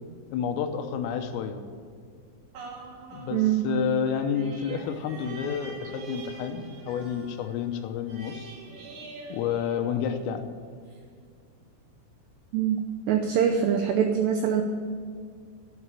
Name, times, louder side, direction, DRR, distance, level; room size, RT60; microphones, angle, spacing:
voice 1, 0.3-1.6 3.1-8.6 9.3-10.5, left 7 dB, 80° left, 7 dB, 3.5 m, -30 dB
sound 1, 2.5-10.4 10.9-11.0, right 4 dB, 55° right, 2.3 m, -44 dB
voice 2, 3.3-3.7 12.5-12.8 13.1-14.6, right 8 dB, 85° right, 5 dB, 2.4 m, -23 dB
11.0 x 7.8 x 9.8 m, 2.2 s
omnidirectional pair, 5.9 m